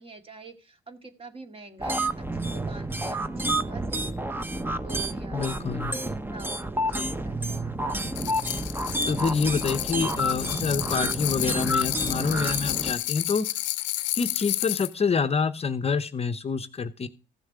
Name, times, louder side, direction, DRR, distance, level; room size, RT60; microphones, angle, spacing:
voice 1, 0.0-5.5 6.3-7.8, right 3 dB, 30° right, 6 dB, 2.0 m, -46 dB
sound 1, 1.8-12.9, right 1 dB, 10° right, 0.9 m, -29 dB
voice 2, 5.3-6.0 9.1-13.5 14.1-17.1, left 5 dB, 35° left, 10 dB, 0.8 m, -27 dB
sound 2, 8.2-14.9, left 16 dB, 80° left, 0.7 m, -31 dB
15.0 x 6.4 x 4.9 m, 0.34 s
supercardioid pair, 75°, 19 cm